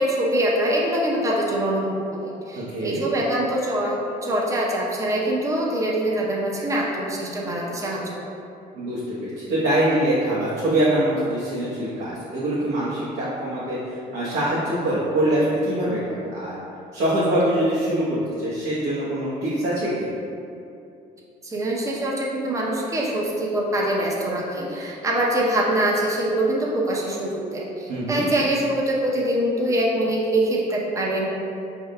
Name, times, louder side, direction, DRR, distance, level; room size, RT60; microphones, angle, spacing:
voice 1, 0.0-8.2 21.4-31.3, right 1 dB, 20° right, -3 dB, 0.7 m, -24 dB
voice 2, 2.6-3.0 8.7-16.6 16.9-20.1 27.9-28.3, right 1 dB, 75° right, -11 dB, 1.1 m, -24 dB
5.0 x 3.6 x 2.2 m, 2.6 s
cardioid pair, 110°, 17 cm